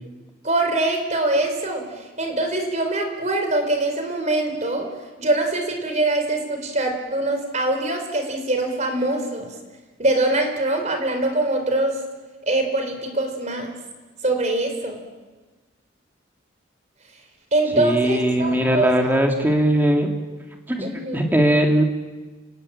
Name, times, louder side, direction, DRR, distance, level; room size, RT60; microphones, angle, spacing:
voice 1, 0.4-1.8 2.2-4.9 5.2-9.5 10.0-12.0 12.4-13.7 14.2-15.0 17.5-19.1 20.8-21.2, right 2 dB, 35° right, 5 dB, 4.4 m, -23 dB
voice 2, 17.7-20.1 20.7-21.8, right 1 dB, 10° right, 2 dB, 2.8 m, -19 dB
29.5 x 19.0 x 8.9 m, 1.3 s
head